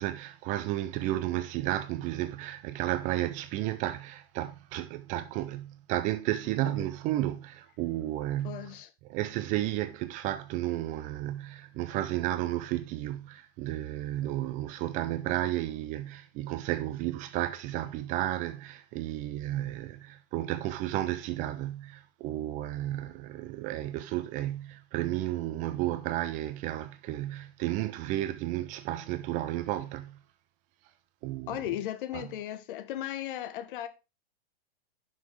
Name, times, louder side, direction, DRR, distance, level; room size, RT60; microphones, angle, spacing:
voice 1, 0.0-8.7 9.1-30.2 31.2-31.5 32.1-32.2, right 14 dB, 25° right, 0.4 m, -32 dB
voice 2, 8.4-8.9 31.5-33.9, left 12 dB, 55° left, 1.3 m, -36 dB
11.0 x 6.1 x 3.5 m
hypercardioid pair, 135°, 31 cm